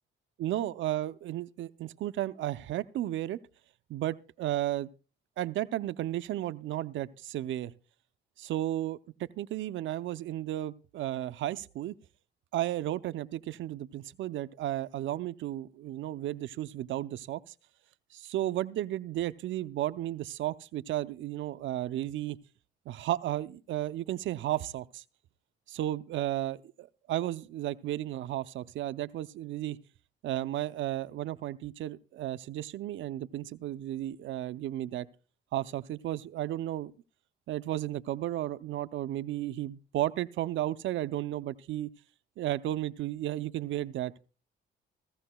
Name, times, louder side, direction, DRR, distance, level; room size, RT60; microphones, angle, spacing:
voice 1, 0.4-3.4 3.9-4.9 5.4-7.7 8.4-12.0 12.5-17.4 18.1-22.4 22.9-25.0 25.7-29.8 30.2-35.1 35.5-36.9 37.5-41.9 42.4-44.1, right 13 dB, 75° right, 0.5 m, -33 dB
16.0 x 15.5 x 2.2 m
cardioid pair, 90°, 20 cm